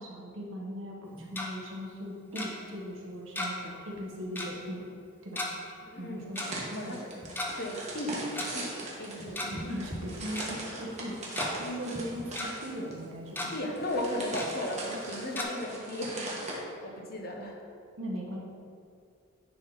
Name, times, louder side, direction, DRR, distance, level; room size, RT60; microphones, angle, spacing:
voice 1, 0.0-4.9 5.2-5.4 5.9-7.0 9.5-11.2 11.6-13.5 16.8-16.9 18.0-18.4, equal, 75° right, -2 dB, 1.2 m, -39 dB
Tick-tock, 1.0-1.5 2.4-2.5 3.4-3.7 4.0-4.1 4.4-4.5 5.4-5.5 6.4-6.5 7.2-7.5 8.4-8.5 9.2-9.6 9.9-10.0 10.4-10.5 11.0-11.5 11.9-12.5 12.9-13.0 13.3-13.5 14.4-14.5 15.4-15.5, left 1 dB, 10° left, 0.6 m, -35 dB
voice 2, 5.8-6.4 6.7-7.0 7.6-9.6 13.5-17.6, left 1 dB, 50° left, 1 dB, 0.9 m, -36 dB
sound 1, 6.3-16.6, right 2 dB, 35° right, 1.2 m, -40 dB
9.8 x 3.7 x 3.9 m, 2.3 s
head